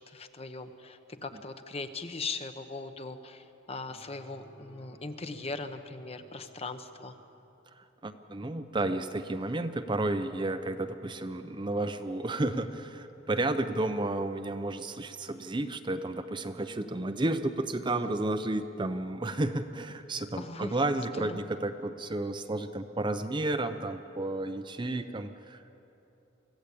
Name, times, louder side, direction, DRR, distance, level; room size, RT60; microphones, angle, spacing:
voice 1, 0.1-7.1 20.4-20.7 21.2-21.4, left 3 dB, 30° left, 8 dB, 1.0 m, -39 dB
sound 1, 3.9-7.4, equal, 60° left, 3.7 m, -57 dB
voice 2, 7.8-25.8, right 2 dB, 25° right, 9 dB, 0.6 m, -32 dB
24.5 x 15.0 x 8.4 m, 3.0 s
head